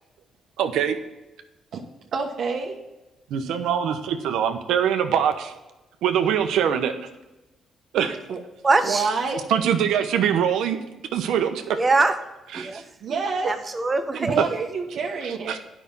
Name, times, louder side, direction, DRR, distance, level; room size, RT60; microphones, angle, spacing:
voice 1, 0.6-1.0 3.3-5.5 6.0-6.9 7.9-8.2 9.5-10.8 11.1-11.8 12.5-12.8 15.2-15.6, right 8 dB, 85° right, 7 dB, 1.0 m, -23 dB
voice 2, 2.1-2.7 8.3-8.4 8.8-9.4 12.6-12.7 13.0-13.5 14.2-15.6, right 4 dB, 65° right, -1 dB, 1.2 m, -27 dB
voice 3, 8.6-9.1 11.8-12.2 12.5-14.4, right 3 dB, 25° right, 8 dB, 1.0 m, -23 dB
9.5 x 6.0 x 5.5 m, 1.0 s
cardioid pair, 90°, 0 cm